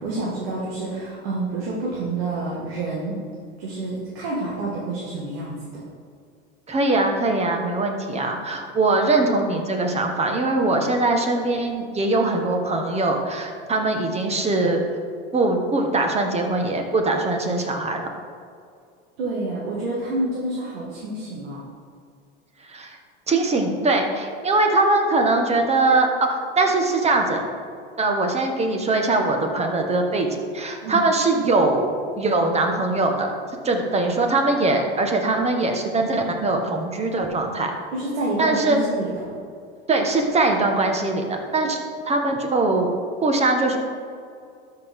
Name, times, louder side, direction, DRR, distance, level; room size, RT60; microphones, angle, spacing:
voice 1, 0.0-3.2 3.6-5.5 19.2-21.6 30.8-31.0 37.9-39.1, right 2 dB, 80° right, -5 dB, 2.0 m, -28 dB
voice 2, 6.7-14.8 15.3-18.1 22.7-23.0 23.3-27.4 28.0-30.3 30.5-31.9 32.2-33.3 33.6-37.7 38.4-38.8 39.9-41.8 42.0-42.9 43.2-43.8, right 2 dB, 20° right, 3 dB, 1.3 m, -21 dB
12.5 x 5.7 x 3.6 m, 2.3 s
supercardioid pair, 115°, 29 cm